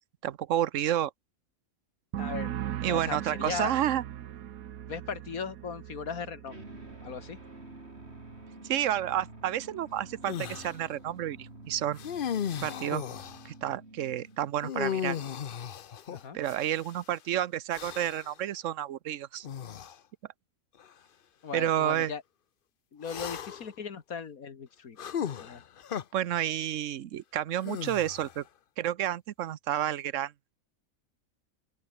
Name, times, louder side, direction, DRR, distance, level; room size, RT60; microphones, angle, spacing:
voice 1, 0.2-1.1 2.8-4.0 8.7-12.0 12.6-13.0 13.4-15.2 16.3-19.5 21.5-22.1 26.1-28.4 28.8-30.3, right 11 dB, 70° right, 1.1 m, -30 dB
sound 1, 2.1-9.6 9.9-10.4, right 11 dB, 85° right, 1.3 m, -40 dB
voice 2, 2.2-2.5 2.9-3.8 4.9-6.5 7.0-7.4 16.1-16.4 21.4-22.2 22.9-25.0 25.4-25.6, left 6 dB, 90° left, 2.2 m, -37 dB
sound 2, 6.5-14.7, right 2 dB, 50° right, 5.5 m, -49 dB
sound 3, 10.3-10.7 12.0-13.5 14.6-17.0 17.7-18.3 19.4-20.0 20.8-20.9 23.0-23.7 25.0-26.0 27.6-28.4, left 8 dB, 50° left, 0.8 m, -36 dB
open air
omnidirectional pair, 1.5 m